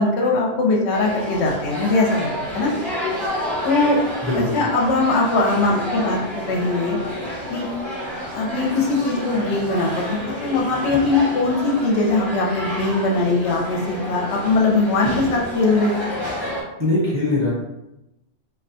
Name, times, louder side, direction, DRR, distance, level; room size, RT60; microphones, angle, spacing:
voice 1, 0.0-2.7 3.7-4.0 4.3-6.2 6.5-7.0 7.5-7.7 8.3-16.1, left 3 dB, 70° left, -1 dB, 0.8 m, -20 dB
sound 1, 0.9-16.6, left 1 dB, 25° left, 0.8 m, -29 dB
voice 2, 4.2-4.6 16.8-17.5, left 2 dB, 15° right, -8 dB, 0.6 m, -21 dB
2.3 x 2.1 x 2.6 m, 0.93 s
omnidirectional pair, 1.3 m